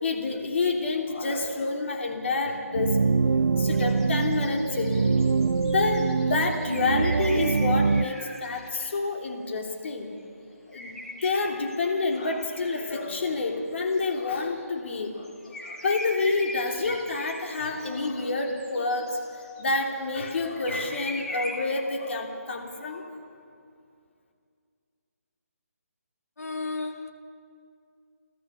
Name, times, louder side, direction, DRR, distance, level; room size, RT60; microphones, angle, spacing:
voice 1, 0.0-3.0 3.6-5.1 5.6-10.1 10.7-10.9 11.2-19.3 19.6-23.1, left 3 dB, 50° left, 3.3 m, -28 dB
sound 1, 2.7-8.1, right 4 dB, 70° right, 0.6 m, -24 dB
sound 2, 3.7-8.9 10.7-13.4 13.8-14.6 15.0-19.7 20.2-21.7, left 1 dB, 5° left, 1.7 m, -41 dB
voice 2, 26.4-27.1, left 3 dB, 75° left, 2.4 m, -33 dB
29.5 x 14.0 x 7.2 m
hypercardioid pair, 165°, 8 cm